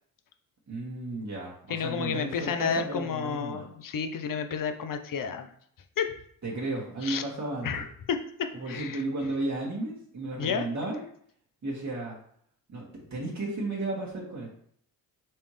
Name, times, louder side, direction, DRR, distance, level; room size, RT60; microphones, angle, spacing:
voice 1, 0.7-3.6 6.4-7.7 8.5-11.0 11.6-12.2 12.7-14.6, right 2 dB, 35° right, -5 dB, 1.7 m, -34 dB
voice 2, 1.7-5.5 6.0-6.1 7.0-7.2 7.6-9.0 10.4-10.7, left 6 dB, 40° left, 7 dB, 0.8 m, -31 dB
4.4 x 3.4 x 3.3 m, 0.64 s
hypercardioid pair, 45°, 49 cm